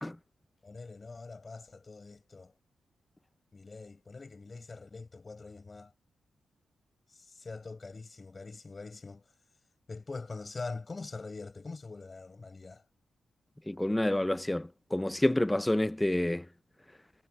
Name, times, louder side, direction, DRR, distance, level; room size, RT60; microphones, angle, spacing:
voice 1, 0.6-2.5 3.5-5.9 7.1-9.3 9.9-12.8, left 3 dB, 40° left, 5.3 m, -44 dB
voice 2, 13.7-16.4, left 1 dB, 10° left, 0.9 m, -28 dB
supercardioid pair, 55°, 0 cm